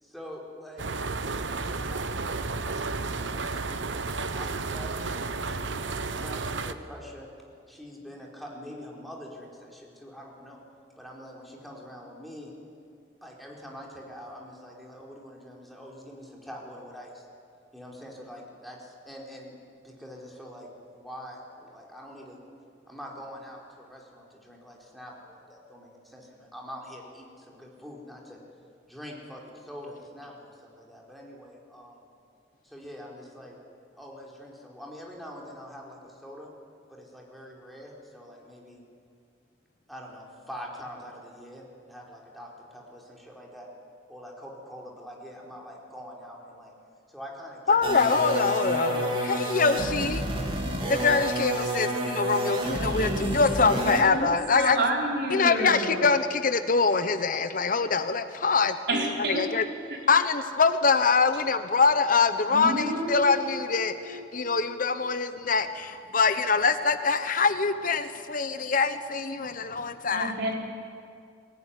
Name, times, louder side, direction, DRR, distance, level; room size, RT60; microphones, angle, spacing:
voice 1, 0.0-3.8 4.2-7.3 7.7-10.6 11.0-12.5 13.2-17.3 17.7-19.6 19.8-22.4 22.8-28.4 28.9-32.1 32.6-33.6 34.0-36.5 36.9-38.8 39.9-43.7 44.1-46.7 47.1-47.8, equal, ahead, -2 dB, 4.1 m, -44 dB
sound 1, 0.8-6.7, right 3 dB, 85° right, 1.0 m, -32 dB
voice 2, 47.7-50.2 50.9-54.8 55.3-59.6 60.1-70.3, left 4 dB, 50° left, 10 dB, 0.9 m, -24 dB
sound 2, 47.8-54.0, equal, 30° right, 3.2 m, -29 dB
voice 3, 52.7-56.2 58.9-59.5 62.5-64.6 70.1-70.5, right 1 dB, 65° right, -1 dB, 4.5 m, -31 dB
22.5 x 18.5 x 9.9 m, 2.3 s
head